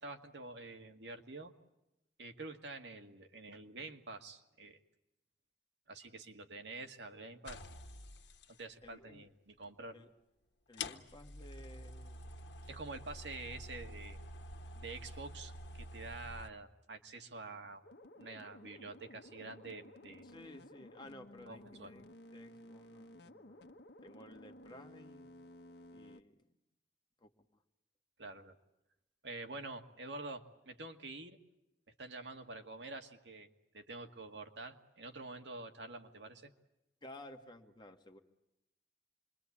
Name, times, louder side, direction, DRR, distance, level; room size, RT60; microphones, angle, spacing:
voice 1, 0.0-1.5 2.2-4.8 5.9-7.6 8.5-10.0 12.7-14.2 14.7-17.8 18.2-20.3 21.5-21.9 28.2-28.5 29.2-31.4 32.0-33.5 33.7-36.5, right 3 dB, 80° right, 5 dB, 2.0 m, -47 dB
sound 1, 7.4-8.5 9.8-9.9 10.7-16.5, left 2 dB, 90° left, 1.4 m, -48 dB
voice 2, 8.8-9.3 9.9-10.1 10.7-12.3 20.2-22.1 22.3-23.6 24.0-25.4 25.9-26.4 27.2-27.3 37.0-38.2, left 1 dB, 25° left, 4 dB, 1.9 m, -55 dB
sound 2, 17.8-26.2, left 1 dB, 65° left, 1.3 m, -55 dB
27.5 x 23.0 x 8.6 m, 0.91 s
head